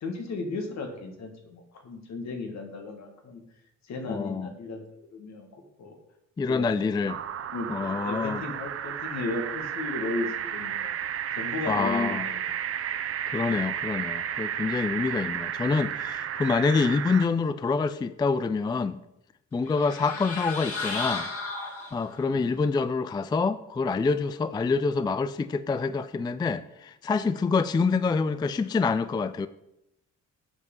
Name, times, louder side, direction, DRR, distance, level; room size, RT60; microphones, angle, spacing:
voice 1, 0.0-3.4 3.8-6.0 6.5-6.8 7.5-10.9 11.3-12.5 22.3-22.6, left 3 dB, 65° left, 4 dB, 1.9 m, -35 dB
voice 2, 4.1-4.5 6.4-7.2 7.7-8.4 11.7-12.3 13.3-19.0 19.5-21.3 21.9-29.5, left 4 dB, 15° left, 14 dB, 0.3 m, -26 dB
sound 1, 7.1-17.3, right 9 dB, 50° right, 0.6 m, -32 dB
sound 2, 19.7-22.3, left 3 dB, 50° left, 1.9 m, -34 dB
8.1 x 5.2 x 5.4 m, 0.84 s
cardioid pair, 90°, 30 cm